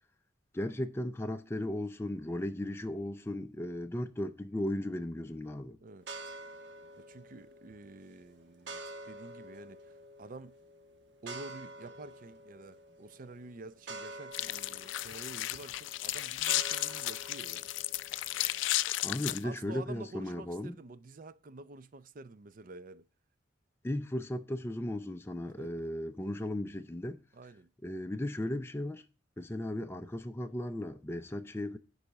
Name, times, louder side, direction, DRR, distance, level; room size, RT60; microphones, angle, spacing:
voice 1, 0.5-5.8 19.0-20.8 23.8-27.2 27.8-29.0 29.4-31.8, left 1 dB, 15° left, 0.4 m, -36 dB
sound 1, 6.0-18.9, right 2 dB, 65° right, 1.2 m, -48 dB
voice 2, 7.0-10.6 11.2-17.7 19.3-23.1 25.6-25.9 27.3-27.7, right 2 dB, 45° right, 0.5 m, -49 dB
sound 2, 14.3-19.4, left 15 dB, 80° left, 0.3 m, -34 dB
10.0 x 4.0 x 5.8 m
head